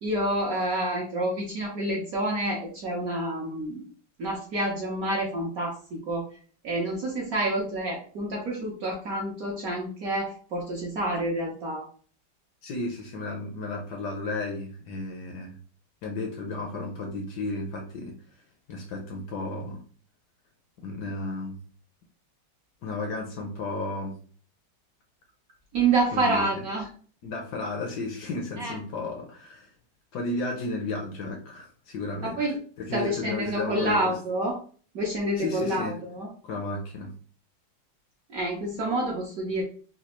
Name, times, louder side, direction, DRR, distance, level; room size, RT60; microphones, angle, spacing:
voice 1, 0.0-3.8 4.2-6.2 6.6-11.8 25.7-26.9 28.6-28.8 32.2-32.6 32.9-34.5 34.9-36.3 38.3-39.6, right 1 dB, 65° right, -2 dB, 0.9 m, -28 dB
voice 2, 12.6-15.6 16.0-18.1 18.7-19.8 20.8-21.6 22.8-24.1 26.1-26.6 27.2-29.7 30.1-32.4 32.8-34.1 35.4-36.0 36.4-37.1, left 2 dB, 70° left, 1 dB, 1.0 m, -33 dB
4.1 x 2.3 x 2.9 m, 0.44 s
omnidirectional pair, 2.2 m